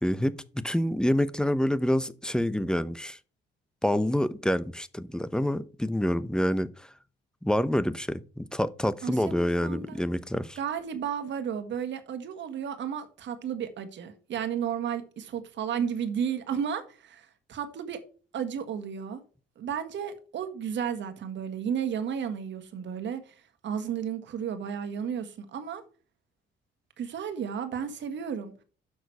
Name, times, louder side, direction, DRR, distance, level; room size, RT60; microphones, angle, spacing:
voice 1, 0.0-3.2 3.8-6.9 7.4-10.6, equal, 5° left, 0.7 m, -27 dB
voice 2, 9.0-10.0 10.6-18.0 18.3-19.2 19.6-25.8 27.0-28.5, right 8 dB, 65° right, 1.6 m, -33 dB
7.2 x 6.1 x 4.7 m
cardioid pair, 90°, 20 cm